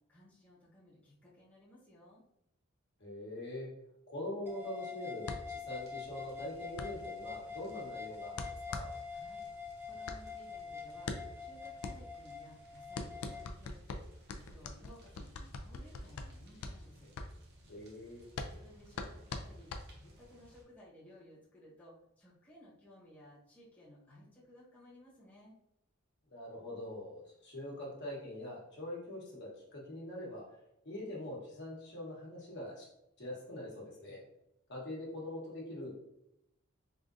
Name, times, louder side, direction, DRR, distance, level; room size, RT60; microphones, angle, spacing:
voice 1, 0.1-2.2 9.1-9.4 9.8-17.1 18.5-25.6, left 1 dB, 10° left, -9 dB, 1.0 m, -58 dB
voice 2, 3.0-3.7 4.1-8.9 17.7-18.2 26.3-30.4 30.8-32.9 33.2-34.2 34.7-35.9, left 1 dB, 55° left, -5 dB, 1.1 m, -43 dB
sound 1, 4.5-13.5, left 5 dB, 10° right, 0.4 m, -45 dB
sound 2, 5.2-20.4, left 3 dB, 85° left, 0.4 m, -44 dB
sound 3, 5.7-20.6, right 1 dB, 55° right, 0.8 m, -61 dB
3.6 x 2.5 x 2.5 m, 0.82 s
head